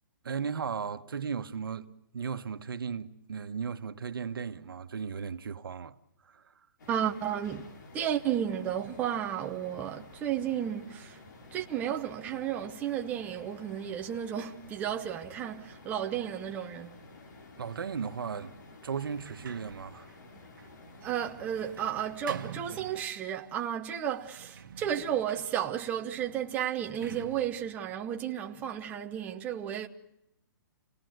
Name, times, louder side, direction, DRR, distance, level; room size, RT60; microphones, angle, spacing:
voice 1, 0.2-6.0 6.2-6.7 17.6-18.5 18.8-20.1, right 6 dB, 85° right, 1.3 m, -36 dB
sound 1, 6.8-23.1, left 3 dB, 55° left, 4.5 m, -52 dB
voice 2, 6.9-7.6 7.9-11.2 11.5-17.0 21.0-29.9, right 10 dB, 15° right, 0.9 m, -33 dB
Sliding door, 19.0-23.5 24.1-29.0, right 7 dB, 65° right, 1.7 m, -48 dB
28.5 x 18.0 x 7.9 m
hypercardioid pair, 165°, 11 cm